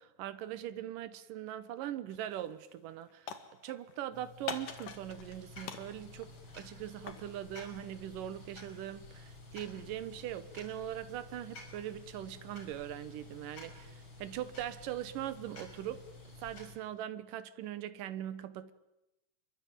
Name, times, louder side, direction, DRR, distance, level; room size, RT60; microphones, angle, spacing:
voice 1, 0.0-3.3 3.6-13.9 14.2-16.0 16.4-18.7, right 11 dB, 80° right, 2.8 m, -41 dB
sound 1, 2.1-2.4 2.7-4.0 4.5-5.4 5.6-7.3, left 7 dB, 80° left, 3.4 m, -44 dB
sound 2, 4.1-16.8, left 2 dB, 35° left, 6.3 m, -52 dB
28.5 x 23.0 x 9.0 m
omnidirectional pair, 3.7 m